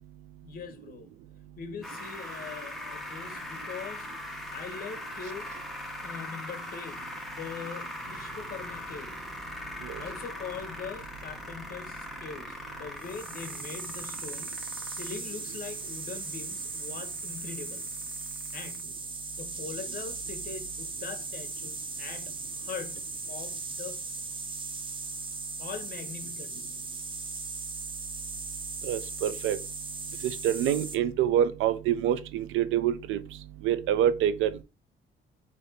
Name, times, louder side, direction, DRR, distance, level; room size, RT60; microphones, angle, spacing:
voice 1, 0.4-1.1 1.6-5.6 6.0-9.2 10.0-17.9 18.5-19.0 19.3-24.0 25.6-26.7, left 6 dB, 45° left, 0.8 m, -42 dB
sound 1, 1.8-18.8, left 1 dB, ahead, 0.9 m, -41 dB
sound 2, 13.0-30.9, right 3 dB, 25° right, 0.7 m, -38 dB
voice 2, 28.8-29.6 30.2-33.2 33.6-34.6, right 10 dB, 85° right, 0.5 m, -26 dB
3.4 x 2.6 x 4.0 m
cardioid pair, 90°, 20 cm